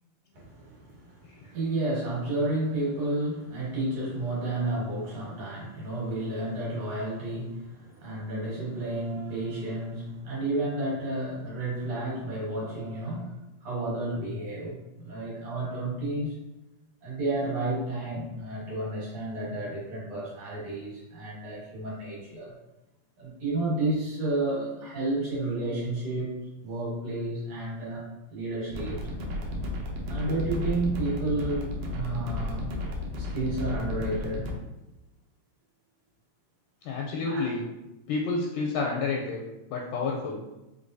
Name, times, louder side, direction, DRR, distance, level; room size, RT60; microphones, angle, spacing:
voice 1, 0.3-16.4 17.0-22.5 23.2-26.3 26.6-29.1 30.1-32.7 33.2-34.5 37.3-37.5, right 2 dB, 55° right, -6 dB, 2.0 m, -31 dB
sound 1, 28.7-34.6, left 1 dB, 90° right, 1.5 m, -33 dB
voice 2, 36.8-37.6 38.1-39.4 39.7-40.4, left 4 dB, 80° left, -1 dB, 2.0 m, -30 dB
5.1 x 3.4 x 2.6 m, 0.99 s
omnidirectional pair, 4.2 m